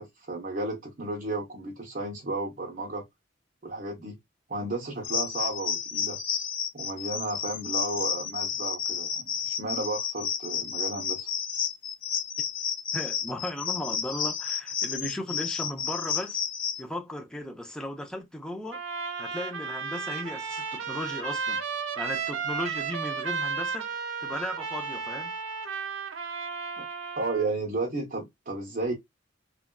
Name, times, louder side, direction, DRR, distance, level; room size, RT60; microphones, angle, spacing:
voice 1, 0.0-3.0 3.6-4.2 4.5-6.2 6.7-11.3 26.8-26.9 27.2-28.9, right 2 dB, 45° right, 0.8 m, -33 dB
sound 1, 5.0-16.8, left 8 dB, 50° left, 0.5 m, -31 dB
voice 2, 12.9-16.4 16.8-18.8 19.2-21.6 22.0-23.9 24.2-25.3, left 1 dB, 5° left, 0.6 m, -36 dB
Trumpet, 18.7-27.5, right 5 dB, 90° right, 0.6 m, -33 dB
3.1 x 2.5 x 2.2 m
head